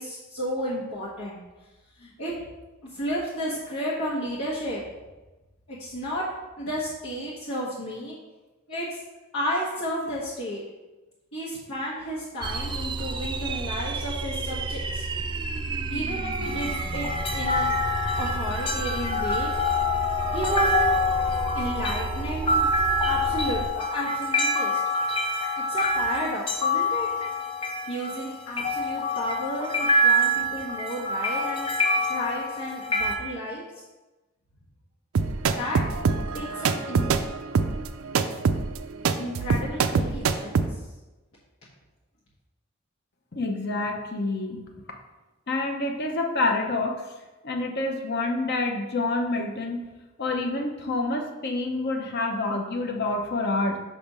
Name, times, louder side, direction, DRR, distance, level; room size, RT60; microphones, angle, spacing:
voice 1, 0.0-1.4 2.0-2.3 2.8-4.8 5.7-6.2 6.6-8.1 8.7-8.9 9.3-10.6 11.3-15.1 15.9-17.7 18.2-19.5 20.3-21.0 21.5-22.7 23.0-24.8 25.7-27.1 27.9-31.7 32.1-33.6 35.6-35.8 36.3-37.1 39.2-40.7, equal, 75° left, -8 dB, 1.3 m, -32 dB
sound 1, 12.4-23.7, right 3 dB, 25° right, 0.3 m, -31 dB
sound 2, 16.4-33.1, left 1 dB, 25° left, 0.6 m, -26 dB
sound 3, 35.2-40.7, right 5 dB, 90° right, 0.4 m, -24 dB
voice 2, 43.3-44.6 45.5-47.0 47.4-49.8 50.2-53.8, left 2 dB, 55° left, 3 dB, 0.8 m, -27 dB
6.0 x 3.4 x 5.4 m, 1.1 s
head